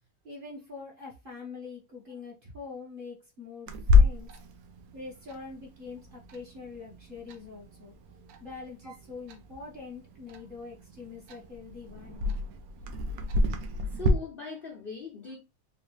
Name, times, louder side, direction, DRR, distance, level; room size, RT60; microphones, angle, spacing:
voice 1, 0.2-4.3 4.9-7.9 8.4-12.3, left 4 dB, 35° right, 1.3 m, -44 dB
Clock, 3.7-14.1, left 3 dB, 70° right, 1.1 m, -29 dB
voice 2, 13.8-15.4, left 5 dB, 45° left, 0.8 m, -39 dB
4.2 x 2.5 x 3.2 m
omnidirectional pair, 1.7 m